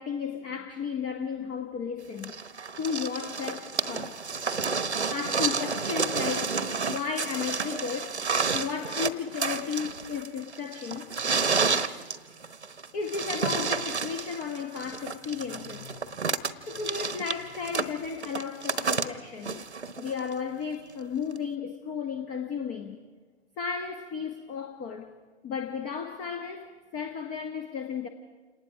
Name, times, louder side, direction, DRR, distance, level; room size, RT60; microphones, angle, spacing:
voice 1, 0.0-2.3 2.8-4.2 5.1-6.6 6.9-8.2 8.5-11.1 12.9-16.1 16.7-19.6 20.0-23.0 23.6-25.1 25.4-28.1, left 6 dB, 25° left, 1.2 m, -34 dB
sound 1, 2.2-20.3 21.4-21.5, right 5 dB, 85° right, 1.1 m, -30 dB
28.0 x 19.0 x 4.9 m
figure-of-eight pair, 115°, 33 cm